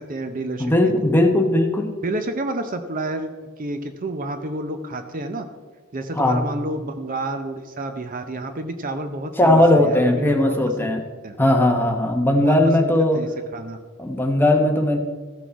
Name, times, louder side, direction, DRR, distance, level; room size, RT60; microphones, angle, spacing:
voice 1, 0.0-0.9 2.0-5.5 5.9-10.9 11.2-11.4 12.4-12.6 13.1-13.8, right 2 dB, 40° right, 8 dB, 0.7 m, -30 dB
voice 2, 0.6-1.9 6.2-6.4 9.4-11.0 11.4-13.2 14.0-15.0, left 1 dB, 10° left, 2 dB, 1.0 m, -18 dB
14.0 x 6.3 x 4.6 m, 1.4 s
head